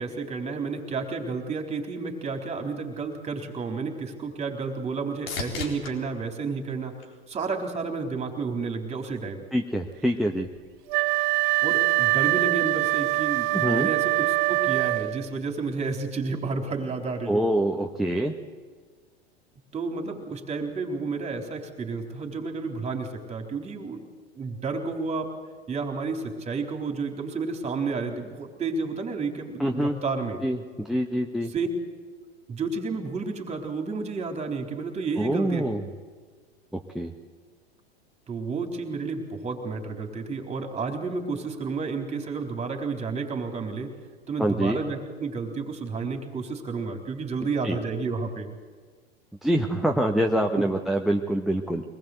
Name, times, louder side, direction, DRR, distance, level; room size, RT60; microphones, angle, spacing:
voice 1, 0.0-7.0 7.3-9.4 11.6-17.4 19.7-24.0 24.3-25.3 25.7-30.4 31.5-31.7 32.5-35.6 38.3-43.9 44.3-48.5 50.6-50.7, right 4 dB, 20° right, 4 dB, 3.8 m, -31 dB
sound 1, 4.2-7.7 8.3-8.9 16.7-16.8, left 4 dB, 65° left, 4.0 m, -40 dB
voice 2, 9.5-10.5 13.5-13.9 17.3-18.3 29.6-30.0 30.4-31.5 35.2-35.8 36.7-37.1 44.4-44.8 47.6-47.8 49.4-51.8, right 1 dB, ahead, 5 dB, 1.3 m, -25 dB
Wind instrument woodwind instrument, 10.9-15.3, right 23 dB, 50° right, 0.7 m, -24 dB
23.5 x 20.0 x 8.1 m, 1.5 s
figure-of-eight pair, 90°, 32 cm